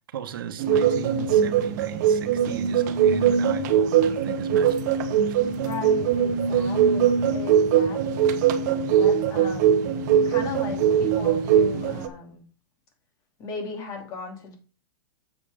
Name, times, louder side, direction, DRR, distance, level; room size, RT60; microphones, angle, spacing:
voice 1, 0.0-4.9, right 9 dB, 75° right, 1.4 m, -36 dB
sound 1, 0.6-12.1, right 8 dB, 50° right, 1.1 m, -21 dB
voice 2, 5.6-8.4 8.9-9.8 10.2-12.4 13.4-14.5, left 4 dB, 30° left, 2.9 m, -37 dB
7.8 x 7.8 x 3.6 m
supercardioid pair, 150°, 12 cm